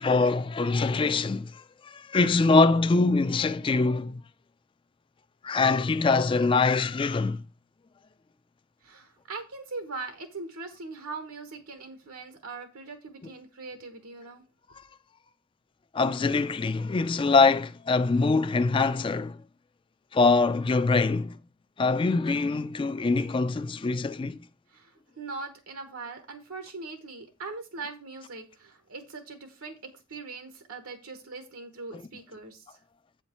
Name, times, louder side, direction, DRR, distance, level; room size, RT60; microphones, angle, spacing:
voice 1, 0.0-4.2 5.4-7.4 15.9-19.4 20.1-21.4 21.8-24.4 31.9-32.0, left 3 dB, 25° left, 0.3 m, -24 dB
voice 2, 8.8-14.4 24.7-24.9 25.2-29.8 30.1-32.8, right 3 dB, 85° right, 1.2 m, -41 dB
8.2 x 5.7 x 4.4 m
head